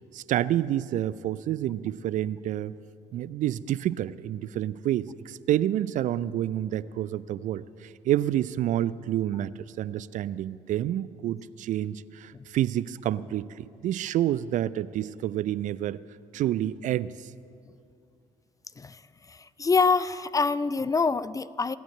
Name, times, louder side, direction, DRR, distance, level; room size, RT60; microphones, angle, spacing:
voice 1, 0.1-2.7 3.1-16.0 16.3-17.3, right 12 dB, 55° right, 18 dB, 0.4 m, -28 dB
voice 2, 19.3-21.8, left 4 dB, 20° left, 17 dB, 0.5 m, -25 dB
17.5 x 8.9 x 7.8 m, 2.4 s
hypercardioid pair, 50°, 16 cm